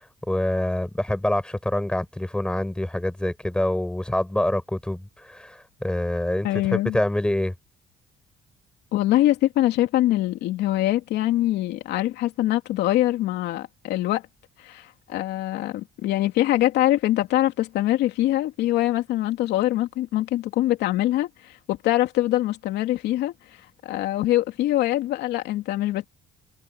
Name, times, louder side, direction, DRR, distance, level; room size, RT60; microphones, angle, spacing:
voice 1, 0.3-7.5, left 1 dB, 5° left, 5.7 m, -26 dB
voice 2, 6.4-7.0 8.9-14.2 14.6-23.3 23.8-26.1, left 15 dB, 80° left, 2.9 m, -23 dB
cardioid pair, 110°, 17 cm